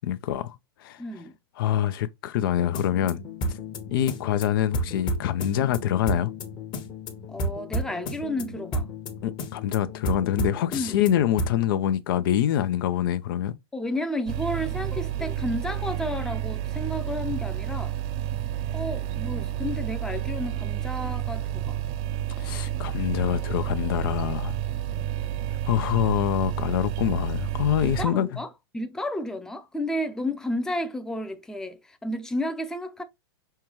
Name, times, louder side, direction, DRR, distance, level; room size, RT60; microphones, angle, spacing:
voice 1, 0.0-0.6 0.8-1.0 1.6-3.2 3.5-3.6 3.9-6.3 9.2-13.6 22.4-24.6 25.6-28.3, left 11 dB, 60° left, 0.5 m, -25 dB
voice 2, 1.0-1.3 7.3-8.9 10.7-11.0 13.7-17.9 18.7-21.8 24.7-25.1 27.8-28.5 28.7-33.0, left 1 dB, 5° left, 0.6 m, -32 dB
sound 1, 2.5-11.7, equal, 35° left, 1.1 m, -33 dB
sound 2, 14.3-28.1, right 12 dB, 40° right, 0.4 m, -30 dB
5.6 x 2.3 x 3.0 m
hypercardioid pair, 125°, 13 cm